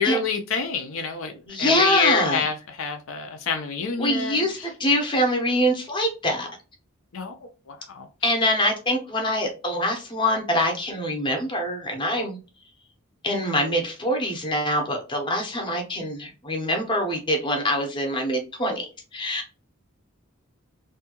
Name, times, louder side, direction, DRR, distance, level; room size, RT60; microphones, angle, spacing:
voice 1, 0.0-1.3 1.6-4.4 7.1-7.3 7.7-8.1, left 5 dB, 70° left, 0.5 m, -27 dB
voice 2, 1.5-2.4 4.0-6.5 8.2-12.4 13.2-19.6, left 1 dB, 20° left, 0.7 m, -24 dB
2.6 x 2.3 x 2.8 m
head